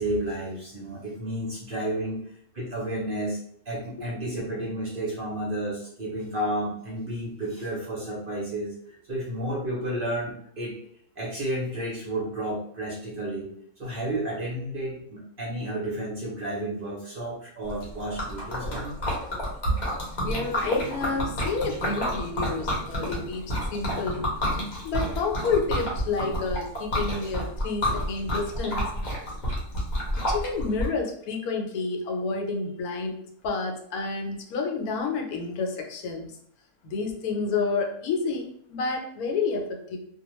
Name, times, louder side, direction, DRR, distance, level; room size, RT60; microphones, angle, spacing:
voice 1, 0.0-2.2 2.5-3.4 3.7-8.7 9.1-10.8 11.2-13.5 13.8-18.9 19.4-19.8, right 1 dB, 50° right, -5 dB, 0.7 m, -31 dB
Liquid, 17.7-30.9, equal, 40° left, 0.7 m, -30 dB
voice 2, 20.2-24.3 24.8-28.9 30.3-33.2 33.4-36.3 36.8-40.0, left 4 dB, 80° left, 2 dB, 1.1 m, -29 dB
2.3 x 2.2 x 2.9 m, 0.67 s
omnidirectional pair, 1.6 m